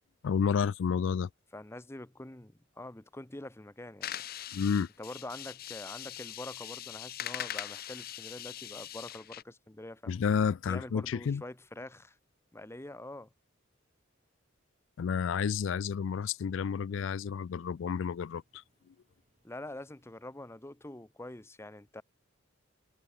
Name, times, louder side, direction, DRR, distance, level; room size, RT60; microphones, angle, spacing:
voice 1, 0.2-1.3 4.5-4.9 10.1-11.4 15.0-18.6, left 6 dB, 65° left, 0.4 m, -30 dB
voice 2, 1.5-4.2 5.0-10.1 10.7-12.2 12.5-13.3 19.4-22.0, left 1 dB, 15° left, 0.9 m, -45 dB
sound 1, 4.0-9.4, left 11 dB, 50° left, 0.8 m, -41 dB
Engine, 15.3-20.5, right 1 dB, 35° right, 6.0 m, -76 dB
head